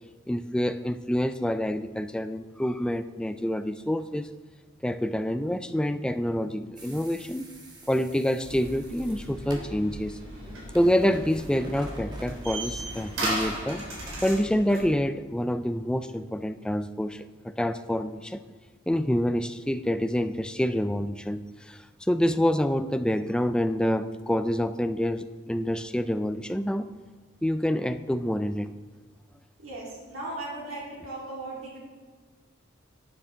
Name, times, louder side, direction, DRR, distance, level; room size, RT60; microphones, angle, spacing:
voice 1, 0.3-4.3 4.8-7.5 7.9-10.2 10.7-13.8 14.2-18.4 18.9-26.9 27.4-28.7, equal, 5° left, 10 dB, 0.3 m, -27 dB
sound 1, 6.8-14.4, equal, 20° right, 1.4 m, -46 dB
sound 2, 8.4-14.8, right 1 dB, 70° right, 3.6 m, -36 dB
voice 2, 29.6-31.8, right 2 dB, 90° right, -6 dB, 3.4 m, -37 dB
11.5 x 9.1 x 3.7 m, 1.4 s
head